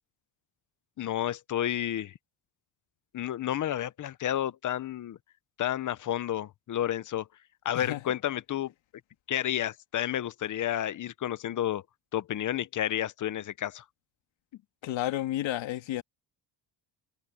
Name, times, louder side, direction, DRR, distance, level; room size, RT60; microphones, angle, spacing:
voice 1, 1.0-2.1 3.1-5.2 5.6-7.3 7.6-8.7 9.3-11.8 12.1-13.8, left 11 dB, 45° left, 0.7 m, -31 dB
voice 2, 14.8-16.0, left 14 dB, 85° left, 2.0 m, -31 dB
cardioid pair, 155°, 45 cm